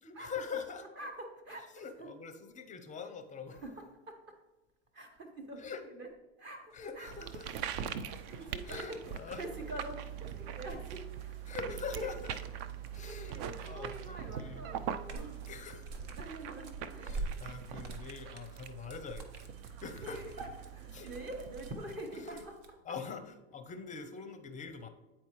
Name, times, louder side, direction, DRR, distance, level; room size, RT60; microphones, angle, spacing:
voice 1, 0.0-0.8 1.7-3.6 5.6-5.8 6.7-7.5 8.4-9.4 11.5-12.4 12.9-14.7 15.4-15.9 17.0-20.2 20.9-21.1 22.1-22.5 22.8-24.9, left 5 dB, 20° left, 8 dB, 0.6 m, -44 dB
voice 2, 1.0-2.2 3.5-3.7 4.1-4.2 4.9-5.7 6.0-6.1 6.4-7.1 7.5-12.1 13.0-15.4 16.2-17.5 20.0-22.5, right 1 dB, 30° right, 3 dB, 1.0 m, -46 dB
sound 1, 6.7-9.5 10.4-14.2 14.6-22.7, right 3 dB, 65° right, 1.1 m, -47 dB
sound 2, 7.1-21.7, right 9 dB, 45° right, 0.5 m, -43 dB
sound 3, 9.3-22.7, right 5 dB, 90° right, 0.6 m, -55 dB
9.3 x 4.4 x 3.0 m, 1.1 s
hypercardioid pair, 95°, 39 cm